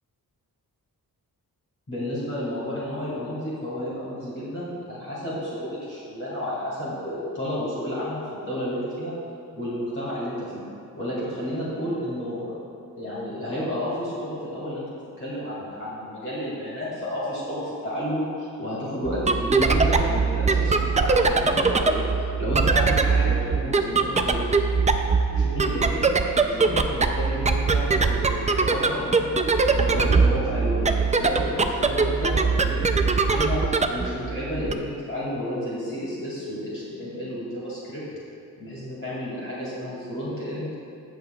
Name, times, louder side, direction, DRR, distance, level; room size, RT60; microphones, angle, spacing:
voice 1, 1.9-9.2 9.5-10.6 10.9-12.6 13.0-24.4 25.3-26.2 26.4-29.4 29.7-38.0 38.6-40.7, left 1 dB, 35° left, -9 dB, 2.3 m, -31 dB
sound 1, 19.0-34.7, right 4 dB, 20° right, 0.4 m, -22 dB
17.0 x 6.5 x 2.3 m, 2.5 s
wide cardioid pair, 115°, 36 cm